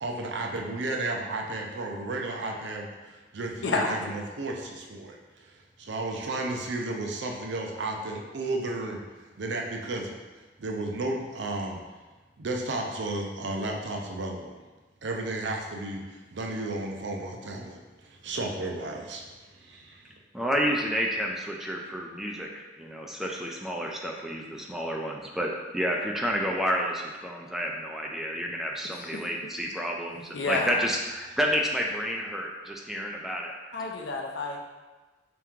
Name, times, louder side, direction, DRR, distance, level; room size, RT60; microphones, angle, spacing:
voice 1, 0.0-5.5 5.8-9.0 9.4-10.2 10.6-11.8 12.4-14.5 15.0-16.0 16.3-19.2 19.5-20.1, right 2 dB, 70° right, 1 dB, 0.5 m, -33 dB
voice 2, 3.6-4.1 29.0-29.2 30.3-30.8 33.7-34.6, left 3 dB, 70° left, 1 dB, 0.6 m, -29 dB
voice 3, 20.3-22.5 22.8-33.7, equal, ahead, -1 dB, 0.4 m, -30 dB
3.5 x 3.0 x 3.6 m, 1.2 s
head